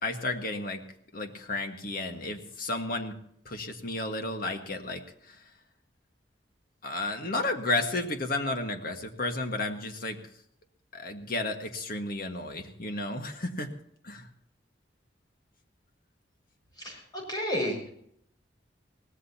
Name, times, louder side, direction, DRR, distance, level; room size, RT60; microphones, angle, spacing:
voice 1, 0.0-0.8 1.1-3.2 3.4-5.3 6.8-10.2 10.9-13.7 14.0-14.3, left 2 dB, 55° left, 5 dB, 1.7 m, -32 dB
voice 2, 16.8-17.9, equal, 25° left, 0 dB, 6.1 m, -32 dB
22.5 x 18.0 x 2.9 m, 0.69 s
head